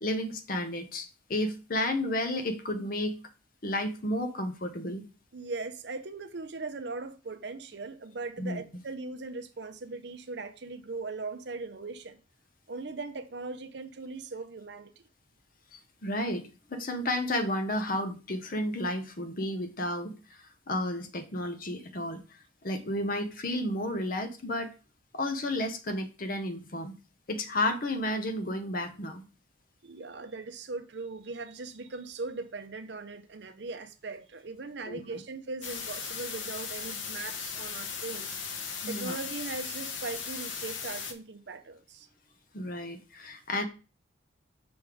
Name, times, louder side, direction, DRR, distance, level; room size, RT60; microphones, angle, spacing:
voice 1, 0.0-3.2 3.6-5.0 8.4-8.8 15.7-22.2 22.6-24.7 25.1-26.9 27.3-29.2 34.9-35.0 38.8-39.2 42.5-43.6, left 1 dB, 45° left, 0.8 m, -32 dB
voice 2, 5.3-12.2 12.7-14.9 29.8-38.4 38.9-42.1, right 3 dB, 60° right, 0.6 m, -39 dB
sound 1, 35.6-41.1, left 6 dB, 80° left, 0.9 m, -37 dB
6.2 x 3.5 x 4.9 m
head